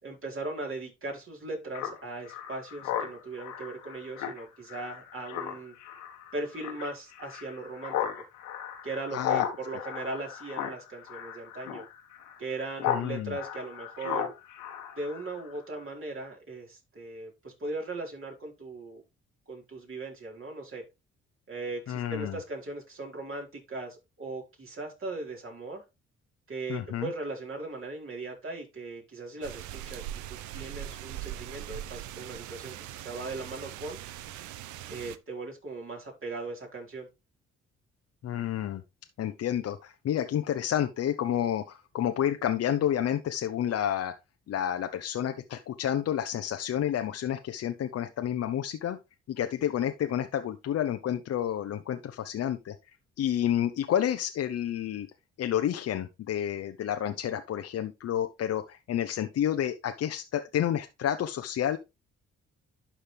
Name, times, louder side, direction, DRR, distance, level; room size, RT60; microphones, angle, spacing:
voice 1, 0.0-5.7 6.3-8.0 8.8-11.8 12.4-14.3 15.0-19.0 19.5-20.8 21.5-25.8 26.5-34.0 34.9-37.1, right 2 dB, 45° right, 4.3 m, -38 dB
Speech synthesizer, 1.7-13.1 13.3-15.6, left 9 dB, 80° left, 1.4 m, -36 dB
voice 2, 9.1-9.4 12.9-13.4 21.9-22.4 26.7-27.1 38.2-38.8 39.2-44.1 44.5-49.0 49.3-55.1 55.4-61.8, left 10 dB, 55° left, 0.8 m, -30 dB
sound 1, 29.4-35.2, right 12 dB, 75° right, 0.7 m, -41 dB
11.5 x 4.3 x 3.3 m
hypercardioid pair, 55°, 30 cm